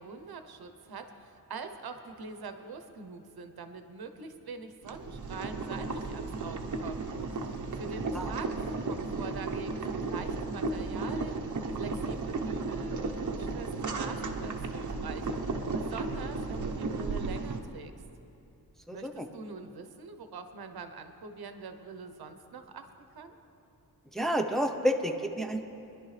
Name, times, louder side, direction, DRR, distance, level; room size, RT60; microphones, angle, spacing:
voice 1, 0.0-7.1 7.7-11.4 11.7-15.3 15.7-17.9 18.9-23.4, right 4 dB, 75° right, 8 dB, 0.9 m, -44 dB
Boiling, 4.8-17.6, right 3 dB, 50° right, 1.0 m, -34 dB
voice 2, 18.9-19.3 24.1-25.6, equal, ahead, 4 dB, 0.7 m, -30 dB
23.5 x 11.5 x 3.3 m, 2.8 s
wide cardioid pair, 100°, 38 cm